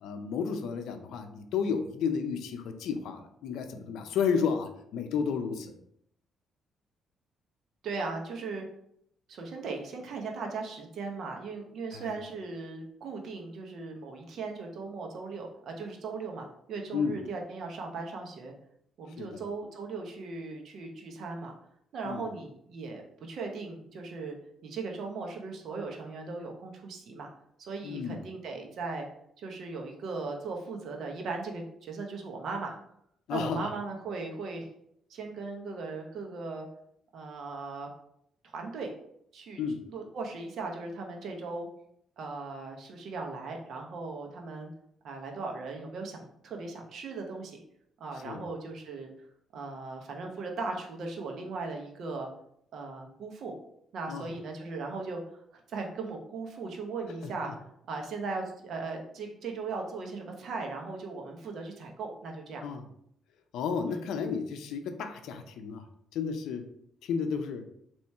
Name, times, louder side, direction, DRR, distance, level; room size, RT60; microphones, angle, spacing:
voice 1, 0.0-5.7 11.9-12.1 16.9-17.2 19.2-19.4 22.0-22.2 27.8-28.2 33.3-33.7 39.6-39.8 48.2-48.4 54.1-54.3 57.4-57.5 62.6-62.8 63.5-65.8 66.1-66.6 67.0-67.6, left 6 dB, 85° left, 7 dB, 0.5 m, -32 dB
voice 2, 7.8-8.7 9.3-18.5 19.0-21.5 21.9-24.3 24.6-27.3 27.6-29.1 29.4-32.7 33.3-34.7 35.1-36.7 37.1-37.9 38.4-38.9 39.3-39.6 39.9-41.7 42.2-44.7 45.0-47.6 48.0-49.1 49.5-52.3 52.7-53.5 53.9-57.5 57.9-62.6 63.9-64.0, right 3 dB, 70° right, 2 dB, 0.9 m, -38 dB
4.2 x 3.0 x 3.4 m, 0.73 s
cardioid pair, 90°, 0 cm